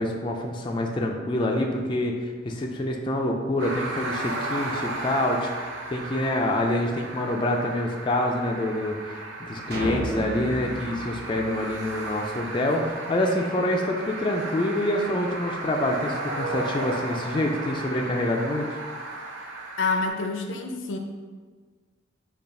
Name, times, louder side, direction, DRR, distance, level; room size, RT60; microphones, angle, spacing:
voice 1, 0.0-18.8, left 1 dB, 25° left, 1 dB, 0.3 m, -26 dB
sound 1, 3.6-20.1, right 2 dB, 85° right, 0.7 m, -35 dB
sound 2, 9.7-12.2, right 2 dB, 55° right, 0.9 m, -33 dB
voice 2, 19.8-21.0, left 3 dB, 85° left, 4 dB, 0.5 m, -27 dB
5.4 x 2.4 x 4.1 m, 1.5 s
head